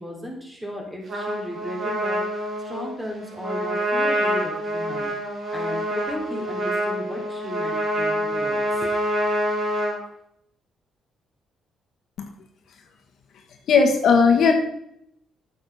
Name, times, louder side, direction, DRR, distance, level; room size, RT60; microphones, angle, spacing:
voice 1, 0.0-5.1 5.5-8.9, equal, 10° right, -1 dB, 3.6 m, -35 dB
Trumpet, 1.1-10.0, equal, 50° right, 3.6 m, -26 dB
voice 2, 13.7-14.5, left 5 dB, 70° left, 3 dB, 1.6 m, -17 dB
9.3 x 6.9 x 5.6 m, 0.73 s
cardioid pair, 90°, 0 cm